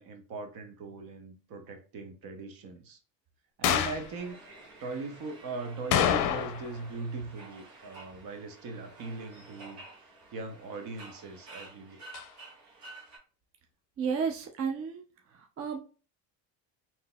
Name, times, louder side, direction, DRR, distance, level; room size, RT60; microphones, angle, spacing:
voice 1, 0.0-3.0 3.6-4.4 4.8-9.8 10.3-12.1, right 3 dB, 60° right, 6 dB, 0.9 m, -40 dB
sound 1, 3.6-4.1 5.9-6.8 7.0-7.1 12.1-12.3, left 10 dB, 50° left, 0.5 m, -26 dB
sound 2, 3.9-13.2, right 2 dB, 75° right, 1.4 m, -51 dB
voice 2, 14.0-15.0 15.3-15.8, right 6 dB, 35° right, 3 dB, 0.5 m, -32 dB
3.7 x 2.8 x 2.3 m, 0.36 s
supercardioid pair, 85°, 40 cm